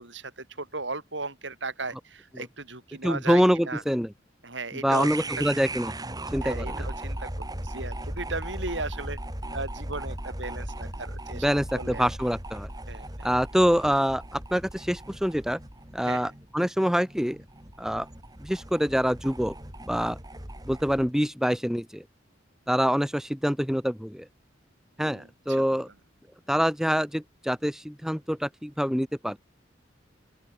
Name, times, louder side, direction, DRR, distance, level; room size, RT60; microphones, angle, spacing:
voice 1, 0.0-3.8 4.4-5.3 6.4-9.2 9.5-11.5 11.7-12.1 12.9-13.3 16.0-16.3 25.0-25.6, right 3 dB, 70° right, 7.6 m, -36 dB
voice 2, 3.0-4.1 4.8-6.0 6.3-6.9 11.4-12.7 13.2-15.6 15.9-17.4 17.8-18.1 18.4-19.5 19.8-20.2 20.7-22.0 22.7-24.2 25.0-25.9 26.5-29.4, equal, 5° right, 2.6 m, -25 dB
sound 1, 4.9-21.1, right 1 dB, 20° right, 5.4 m, -37 dB
open air
head